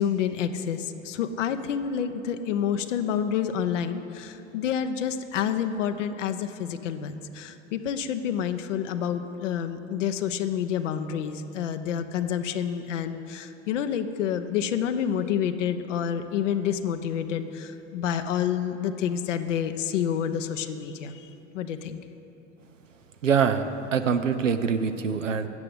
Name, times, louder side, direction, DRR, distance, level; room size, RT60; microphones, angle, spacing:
voice 1, 0.0-22.0, left 8 dB, 75° left, 8 dB, 0.8 m, -28 dB
voice 2, 23.2-25.5, right 6 dB, 90° right, 9 dB, 0.7 m, -24 dB
13.0 x 7.7 x 7.8 m, 3.0 s
figure-of-eight pair, 75°, 38 cm